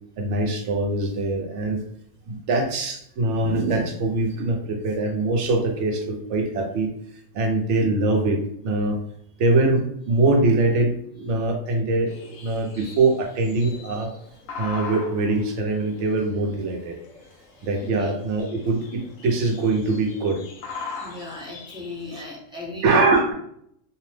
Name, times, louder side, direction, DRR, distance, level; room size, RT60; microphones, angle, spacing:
voice 1, 0.2-1.8 2.3-6.9 7.3-9.0 9.4-14.1 14.6-16.9 17.6-20.4 22.1-22.3 22.8-23.3, right 2 dB, 70° right, 2 dB, 0.9 m, -23 dB
sound 1, 12.1-22.1, left 4 dB, 80° left, 1.0 m, -41 dB
voice 2, 17.2-18.1 21.0-23.1, left 2 dB, 5° right, -7 dB, 0.6 m, -38 dB
2.7 x 2.0 x 3.1 m, 0.70 s
omnidirectional pair, 1.3 m